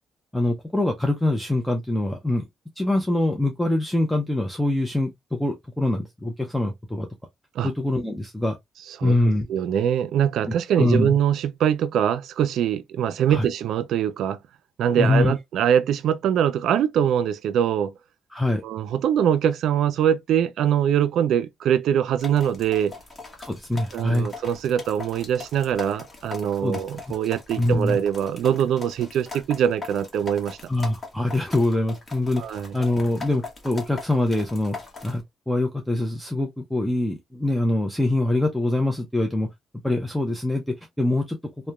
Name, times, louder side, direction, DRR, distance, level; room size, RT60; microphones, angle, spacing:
voice 1, 0.3-2.5 2.8-7.1 7.6-8.6 9.0-9.5 10.5-11.1 13.3-13.5 15.0-15.3 18.3-18.6 23.4-24.3 26.6-26.8 27.6-28.0 30.7-32.4 32.7-34.8 35.0-39.5 39.8-40.6 41.0-41.4, left 1 dB, 5° left, 0.5 m, -24 dB
voice 2, 9.5-14.4 14.8-17.9 18.6-22.9 23.9-30.6 32.4-32.8, right 9 dB, 75° right, 0.3 m, -23 dB
sound 1, 22.2-35.2, left 4 dB, 30° left, 1.0 m, -40 dB
2.8 x 2.1 x 2.3 m
cardioid pair, 90°, 0 cm